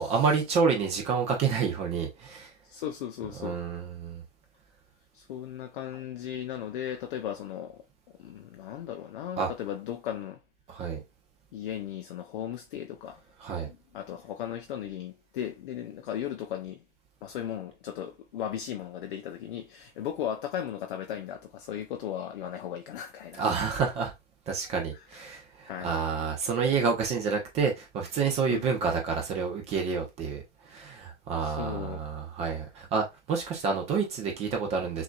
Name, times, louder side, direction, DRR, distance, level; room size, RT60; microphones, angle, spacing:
voice 1, 0.0-2.5 3.4-4.2 9.4-9.5 10.7-11.0 13.4-13.7 23.4-24.1 24.5-35.0, right 5 dB, 15° right, 0.7 m, -29 dB
voice 2, 2.6-3.6 5.1-7.8 8.2-10.4 11.5-13.2 13.6-16.8 17.2-23.4 25.7-25.9 28.5-28.7 31.4-32.0, left 10 dB, 45° left, 0.5 m, -36 dB
5.9 x 2.7 x 2.3 m
hypercardioid pair, 135°, 39 cm